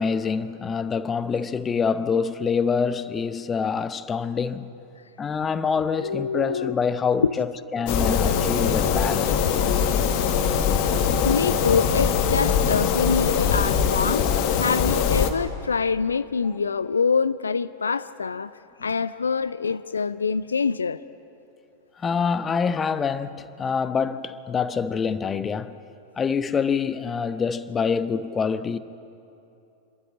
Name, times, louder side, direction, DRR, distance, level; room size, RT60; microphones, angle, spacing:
voice 1, 0.0-4.7 5.2-7.5 7.7-9.4 22.0-25.8 26.2-28.8, left 6 dB, 20° left, 0.7 m, -26 dB
voice 2, 6.0-6.7 7.2-7.4 11.1-14.3 14.5-18.5 18.8-21.0, left 5 dB, 75° left, 0.4 m, -25 dB
sound 1, 7.9-15.3, left 7 dB, 45° left, 1.3 m, -22 dB
27.0 x 13.0 x 8.6 m
figure-of-eight pair, 90°, 0 cm